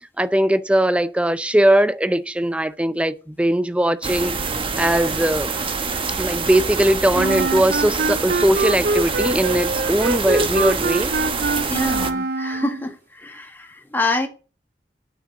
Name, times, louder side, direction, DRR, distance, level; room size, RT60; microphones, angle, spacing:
voice 1, 0.2-4.4 4.8-5.5 6.2-11.1, right 1 dB, 5° right, 0.5 m, -20 dB
sound 1, 4.0-12.1, right 4 dB, 30° right, 1.2 m, -26 dB
Wind instrument woodwind instrument, 7.1-12.9, right 3 dB, 55° right, 0.6 m, -24 dB
voice 2, 11.7-14.3, left 2 dB, 10° left, 1.7 m, -26 dB
9.3 x 6.2 x 8.0 m
head